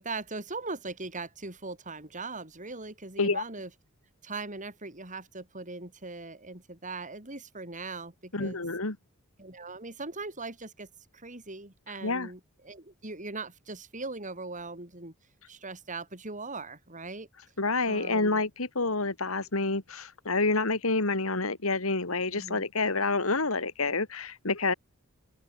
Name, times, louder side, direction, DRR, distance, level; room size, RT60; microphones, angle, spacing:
voice 1, 0.0-3.7 4.2-8.7 9.4-10.9 11.1-15.1 15.5-17.3 17.9-18.4 22.3-22.6, right 3 dB, 35° right, 7.4 m, -40 dB
voice 2, 8.3-9.0 12.0-12.3 17.6-24.7, left 3 dB, 70° left, 2.7 m, -28 dB
open air
head